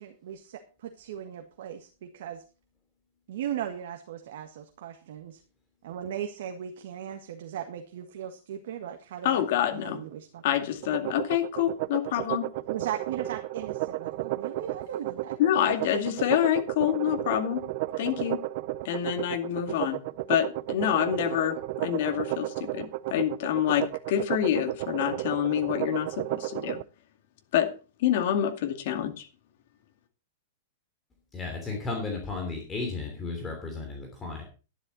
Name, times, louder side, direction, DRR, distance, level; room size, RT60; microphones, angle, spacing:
voice 1, 0.0-2.4 3.3-5.4 5.8-9.4 9.7-10.4 12.7-15.4 15.8-16.0, right 10 dB, 60° right, 6 dB, 1.7 m, -37 dB
voice 2, 9.2-10.0 10.4-12.5 15.4-17.7 18.0-18.5 18.8-20.0 20.3-26.8 27.5-27.7 28.0-29.3, left 11 dB, 50° left, 6 dB, 2.3 m, -27 dB
sound 1, 10.8-26.8, right 17 dB, 40° right, 0.5 m, -33 dB
voice 3, 31.3-34.4, left 3 dB, 10° left, 2 dB, 3.0 m, -34 dB
12.0 x 11.0 x 4.2 m, 0.34 s
supercardioid pair, 170°, 0 cm